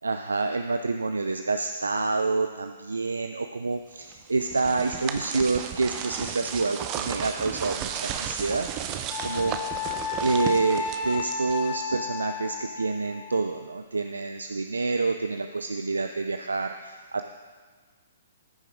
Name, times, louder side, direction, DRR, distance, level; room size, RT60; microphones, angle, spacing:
voice 1, 0.0-8.7 9.2-9.6 10.2-17.3, right 3 dB, 80° right, 7 dB, 0.4 m, -28 dB
sound 1, 4.1-11.9, right 8 dB, 30° right, 0.7 m, -34 dB
Wind instrument woodwind instrument, 9.1-13.5, left 5 dB, 30° left, 0.8 m, -33 dB
14.5 x 6.7 x 3.7 m, 1.5 s
figure-of-eight pair, 120°, 0 cm